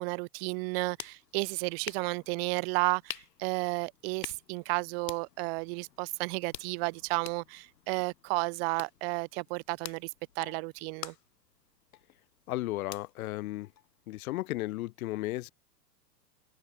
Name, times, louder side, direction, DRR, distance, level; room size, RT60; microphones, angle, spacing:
voice 1, 0.0-10.1 10.4-11.1, right 31 dB, 40° right, 0.6 m, -32 dB
sound 1, 0.5-14.3, left 11 dB, 75° left, 2.2 m, -49 dB
voice 2, 12.5-13.7 14.1-15.5, left 17 dB, 60° left, 0.9 m, -34 dB
open air
hypercardioid pair, 110°, 50 cm